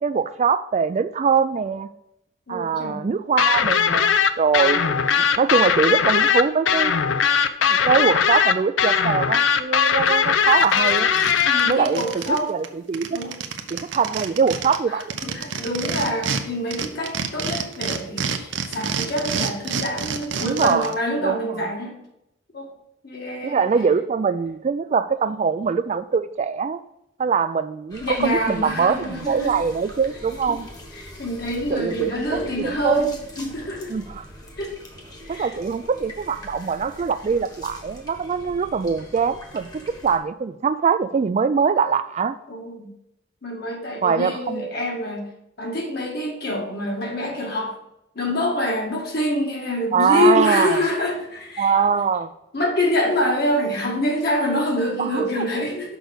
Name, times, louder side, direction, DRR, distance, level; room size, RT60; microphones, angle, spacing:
voice 1, 0.0-1.9 2.5-6.9 7.6-11.1 11.7-13.2 13.7-15.2 20.4-20.9 21.2-21.4 23.4-26.8 27.2-30.7 31.7-33.1 33.9-34.2 35.3-39.7 40.0-42.4 44.0-44.6 49.9-50.8 51.6-52.3 55.0-55.5, right 6 dB, 35° right, 12 dB, 0.3 m, -22 dB
voice 2, 2.5-3.0 11.4-12.6 13.1-13.4 14.9-22.0 22.5-22.7 23.0-23.7 28.0-29.5 30.5-30.6 30.9-33.9 34.6-34.7 35.2-35.5 42.5-42.9 43.4-45.3 45.6-47.8 48.2-51.7 52.5-56.0, left 1 dB, 55° left, 0 dB, 1.9 m, -26 dB
sound 1, 3.4-11.7, left 7 dB, 85° left, 0.5 m, -19 dB
sound 2, 10.1-10.2 10.5-12.4 12.6-12.7 12.9-16.4 16.7-20.9, right 6 dB, 75° right, 0.7 m, -28 dB
sound 3, 27.9-40.2, left 1 dB, 20° left, 1.3 m, -42 dB
6.2 x 5.1 x 6.5 m, 0.82 s
head